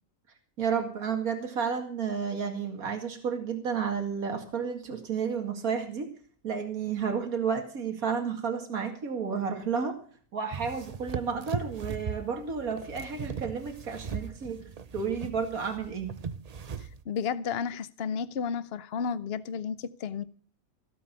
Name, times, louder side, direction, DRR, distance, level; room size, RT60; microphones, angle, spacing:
voice 1, 0.6-6.1 6.4-10.0 10.3-16.1, right 6 dB, 75° right, 2.6 m, -31 dB
sound 1, 10.5-17.0, right 6 dB, 35° right, 0.6 m, -38 dB
voice 2, 17.1-20.2, left 6 dB, 50° left, 1.0 m, -32 dB
17.0 x 8.3 x 6.9 m
omnidirectional pair, 1.5 m